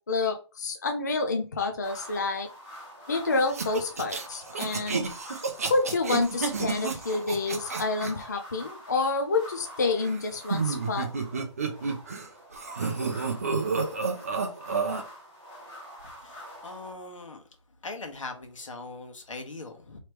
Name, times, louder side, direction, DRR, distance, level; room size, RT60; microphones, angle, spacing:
voice 1, 0.1-2.5 3.1-5.1 5.7-11.1, left 3 dB, 35° left, 0.5 m, -28 dB
sound 1, 1.8-16.9, equal, 10° left, 0.8 m, -46 dB
sound 2, 3.5-8.1 10.0-12.3 12.5-15.0, right 4 dB, 30° right, 0.6 m, -30 dB
voice 2, 16.2-17.4 17.8-20.0, left 3 dB, 85° left, 1.4 m, -40 dB
3.3 x 3.2 x 4.6 m
hypercardioid pair, 175°, 16 cm